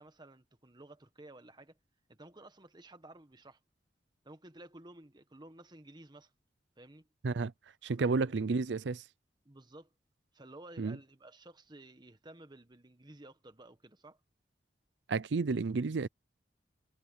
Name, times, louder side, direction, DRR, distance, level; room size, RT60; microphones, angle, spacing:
voice 1, 0.0-1.8 2.1-3.6 4.2-6.3 6.8-7.1 8.0-8.3 9.4-9.9 10.3-14.2, right 1 dB, 25° right, 1.5 m, -54 dB
voice 2, 7.8-9.1 10.8-11.0 15.1-16.1, right 4 dB, 80° right, 0.5 m, -31 dB
head